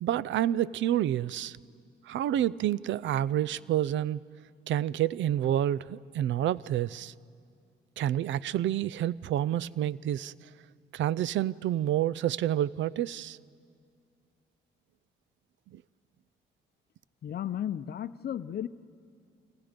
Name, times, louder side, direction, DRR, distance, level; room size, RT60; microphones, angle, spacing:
voice 1, 0.0-1.6 2.1-4.2 4.7-7.1 8.0-10.3 10.9-13.4 15.7-15.8, right 12 dB, 70° right, 0.5 m, -28 dB
voice 2, 17.2-18.7, left 10 dB, 50° left, 0.7 m, -34 dB
29.5 x 24.5 x 5.2 m
cardioid pair, 90°, 20 cm